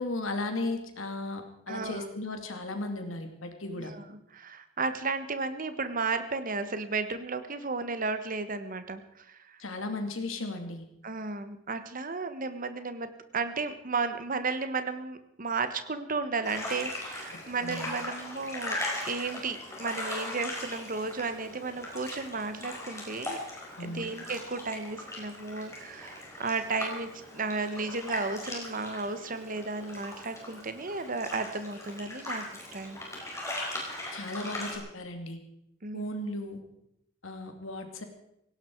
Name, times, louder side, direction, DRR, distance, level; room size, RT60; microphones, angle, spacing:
voice 1, 0.0-3.9 9.6-10.8 17.6-17.9 23.8-24.1 34.1-35.4 35.9-36.6 37.2-38.1, left 2 dB, 90° left, 6 dB, 2.6 m, -35 dB
voice 2, 1.7-2.1 3.8-9.6 11.0-18.8 19.0-23.4 23.8-32.4 32.7-33.0 35.8-36.1, right 4 dB, 45° right, 10 dB, 1.4 m, -34 dB
sound 1, 16.4-34.8, left 1 dB, 15° left, 4.8 m, -39 dB
17.5 x 17.0 x 4.7 m, 0.80 s
head